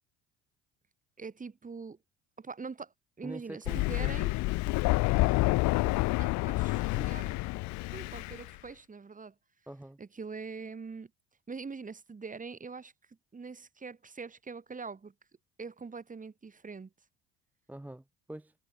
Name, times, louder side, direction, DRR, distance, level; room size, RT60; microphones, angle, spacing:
voice 1, 1.2-2.0 2.4-2.9 3.2-4.3 5.8-7.4 7.9-9.3 10.0-11.1 11.5-12.9 13.3-15.1 15.6-16.9, right 4 dB, 25° right, 2.6 m, -43 dB
voice 2, 3.2-4.2 9.7-10.0 17.7-18.5, right 1 dB, 5° right, 0.8 m, -45 dB
Thunder, 3.7-8.5, left 22 dB, 60° left, 0.5 m, -28 dB
supercardioid pair, 75°, 33 cm